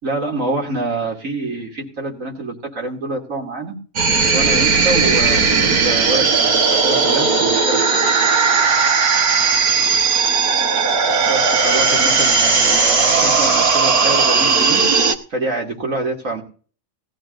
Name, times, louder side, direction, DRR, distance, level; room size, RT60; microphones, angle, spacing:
voice 1, 0.0-3.8 4.3-8.1 11.2-14.8 15.3-16.4, right 2 dB, 60° right, 0 dB, 3.1 m, -26 dB
sound 1, 4.0-15.2, right 4 dB, 85° right, 1.9 m, -16 dB
19.0 x 13.0 x 2.6 m, 0.40 s
omnidirectional pair, 1.5 m